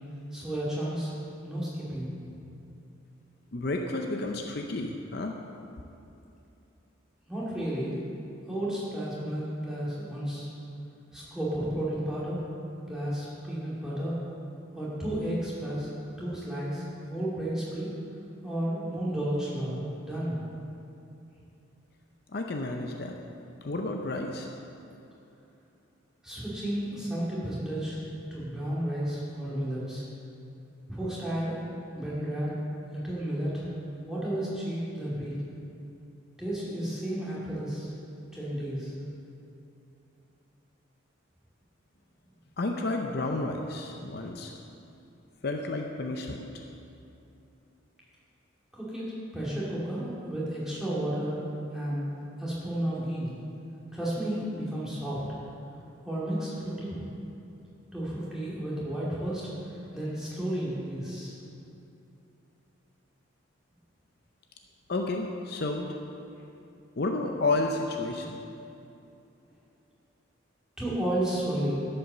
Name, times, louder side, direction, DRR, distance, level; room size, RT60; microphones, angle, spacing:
voice 1, 0.3-1.1 1.4-2.1 7.3-7.9 8.5-10.5 11.1-12.4 12.9-14.2 14.7-15.9 16.2-17.9 18.4-20.4 26.2-28.0 28.3-30.0 30.9-31.6 31.9-32.6 32.9-33.6 34.0-35.3 36.4-37.9 38.3-38.9 48.7-51.4 51.7-52.0 52.4-53.4 53.9-55.4 56.0-57.0 57.9-59.4 59.9-61.3 70.8-71.8, right 1 dB, 5° right, -8 dB, 2.5 m, -32 dB
voice 2, 3.5-5.3 22.3-23.2 23.6-24.5 42.6-44.5 45.4-46.6 64.9-65.9 67.0-68.4, left 2 dB, 50° left, 3 dB, 0.6 m, -31 dB
11.5 x 5.6 x 6.7 m, 2.7 s
head